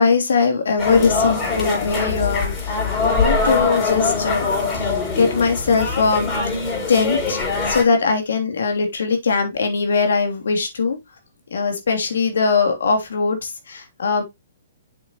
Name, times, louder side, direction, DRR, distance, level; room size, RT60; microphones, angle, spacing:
voice 1, 0.0-6.6 6.9-7.4 7.7-11.0 11.5-14.2, left 4 dB, 75° left, 3.1 m, -21 dB
sound 1, 0.8-7.8, left 4 dB, 25° left, 5.9 m, -22 dB
7.6 x 7.4 x 3.0 m
hypercardioid pair, 125°, 0 cm